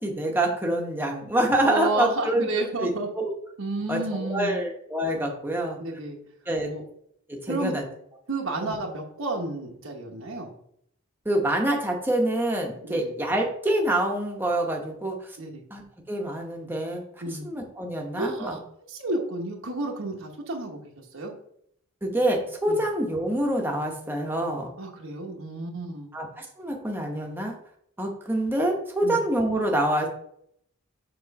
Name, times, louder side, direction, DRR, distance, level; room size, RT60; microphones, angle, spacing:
voice 1, 0.0-2.5 2.8-3.3 3.9-5.8 6.5-6.7 7.3-7.8 8.6-8.8 11.2-15.4 15.7-17.0 17.4-18.6 22.0-24.7 26.1-27.5 28.0-30.1, right 1 dB, 10° right, 0 dB, 1.0 m, -26 dB
voice 2, 1.6-3.1 3.6-4.6 5.8-6.2 6.6-6.8 7.5-7.7 8.3-10.5 12.9-13.1 15.4-15.6 17.2-17.4 18.2-18.6 18.9-21.3 22.7-22.8 24.8-26.1 29.0-29.2, right 2 dB, 70° right, 0 dB, 1.1 m, -31 dB
6.9 x 3.1 x 5.2 m, 0.70 s
head